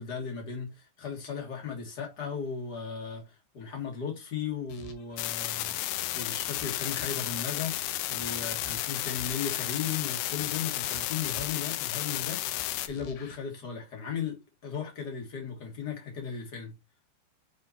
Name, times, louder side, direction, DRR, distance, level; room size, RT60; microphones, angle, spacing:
voice 1, 0.0-5.7 6.1-7.8 8.1-14.4 14.6-16.7, left 6 dB, 40° left, 1.5 m, -36 dB
sound 1, 4.7-5.2 5.5-7.4 7.7-9.6 9.9-11.7 12.1-13.4, left 4 dB, 65° left, 2.7 m, -50 dB
sound 2, 5.2-12.9, left 15 dB, 80° left, 2.7 m, -32 dB
7.4 x 4.2 x 4.2 m
omnidirectional pair, 4.9 m